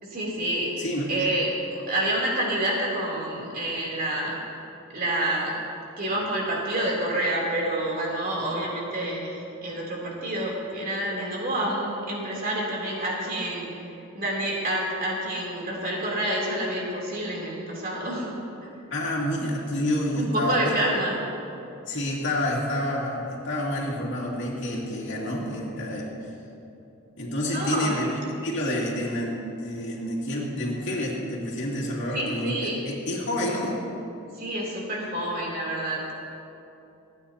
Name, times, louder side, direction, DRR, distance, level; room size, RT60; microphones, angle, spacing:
voice 1, 0.0-0.8 1.1-4.4 4.9-5.5 6.0-13.7 14.1-18.7 20.1-21.2 27.4-28.0 32.1-32.8 34.3-36.2, right 1 dB, 45° right, -4 dB, 3.3 m, -28 dB
voice 2, 18.9-20.7 21.9-26.1 27.2-28.1 28.4-33.8, left 1 dB, 60° left, -4 dB, 2.6 m, -28 dB
28.5 x 9.8 x 2.9 m, 2.9 s
head